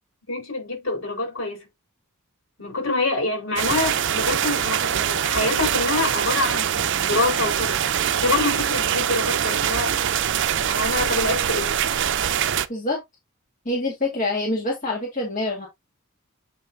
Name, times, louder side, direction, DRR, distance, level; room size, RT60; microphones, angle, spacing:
voice 1, 0.3-1.7 2.6-7.8 8.2-9.9 10.7-11.8, left 2 dB, 65° left, 4.0 m, -26 dB
sound 1, 3.6-12.7, right 9 dB, 55° right, 0.5 m, -23 dB
voice 2, 12.7-13.0 13.7-15.7, left 2 dB, 35° left, 1.9 m, -26 dB
7.6 x 5.2 x 2.6 m
head